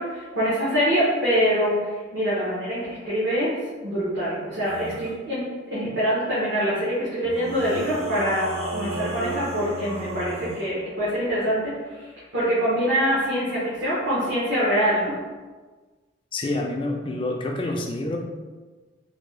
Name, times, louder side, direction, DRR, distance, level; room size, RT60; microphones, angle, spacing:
voice 1, 0.0-5.4 5.7-15.1, equal, 65° right, -10 dB, 1.0 m, -24 dB
sound 1, 4.6-5.1 7.2-10.7, right 1 dB, 30° right, 0.5 m, -33 dB
voice 2, 16.3-18.2, left 2 dB, 25° left, 1 dB, 0.3 m, -27 dB
3.4 x 2.2 x 3.1 m, 1.3 s
head